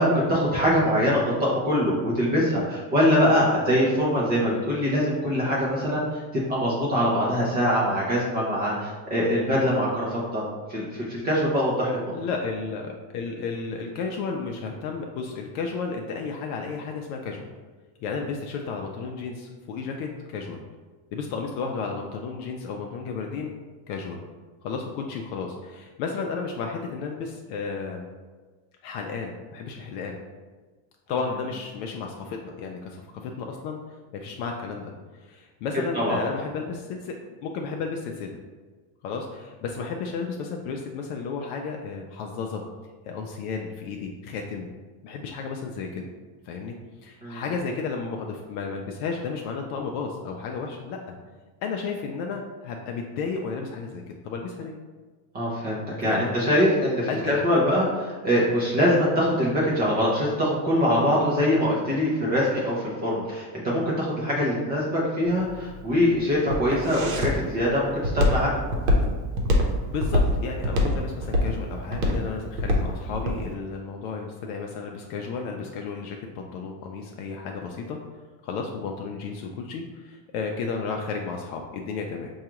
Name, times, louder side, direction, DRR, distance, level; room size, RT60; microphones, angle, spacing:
voice 1, 0.0-10.4 10.7-12.1 35.9-36.2 47.2-47.4 55.3-62.8 63.0-68.5, equal, 20° right, -6 dB, 0.4 m, -23 dB
voice 2, 12.1-17.4 18.0-20.6 21.1-23.5 23.9-24.2 24.6-28.0 28.8-30.2 31.1-33.8 34.1-34.9 35.2-38.4 39.0-42.6 43.1-44.7 45.0-46.0 46.4-46.7 47.0-51.2 51.6-54.7 56.0-56.3 57.1-57.4 69.9-78.0 78.4-82.3, left 5 dB, 65° left, 2 dB, 0.5 m, -33 dB
Walk footsteps, 65.3-73.4, left 1 dB, 65° right, 0.8 m, -24 dB
4.7 x 2.3 x 2.9 m, 1.3 s
cardioid pair, 160°, 49 cm